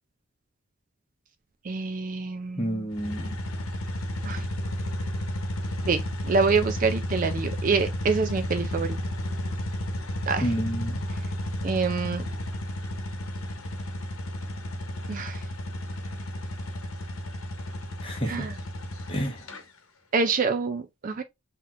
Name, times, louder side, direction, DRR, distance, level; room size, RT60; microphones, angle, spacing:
voice 1, 1.6-2.9 4.2-4.4 5.9-9.0 10.3-10.5 11.6-12.2 15.1-15.4 18.3-18.6 20.1-21.2, right 4 dB, 40° right, 0.4 m, -26 dB
voice 2, 2.6-3.4 10.4-11.0 18.0-18.5 19.1-19.5, equal, 25° left, 1.1 m, -29 dB
sound 1, 2.9-19.6, left 1 dB, 85° left, 1.0 m, -32 dB
5.7 x 2.9 x 2.5 m
head